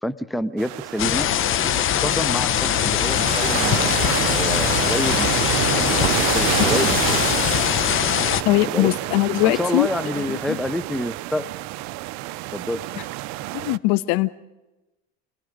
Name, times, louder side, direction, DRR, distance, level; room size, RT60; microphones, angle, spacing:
voice 1, 0.0-1.3 1.6-3.9 4.2-5.5 5.8-7.4 8.7-8.9 9.4-11.5 12.5-12.8, left 1 dB, ahead, 13 dB, 0.7 m, -28 dB
sound 1, 0.6-13.8, right 17 dB, 60° right, 0.7 m, -28 dB
sound 2, 1.0-8.4, left 12 dB, 40° left, 1.0 m, -22 dB
voice 2, 8.4-9.9 10.2-10.6 13.5-14.3, left 19 dB, 70° left, 16 dB, 1.0 m, -21 dB
29.0 x 19.5 x 5.2 m, 1.0 s
supercardioid pair, 115°, 31 cm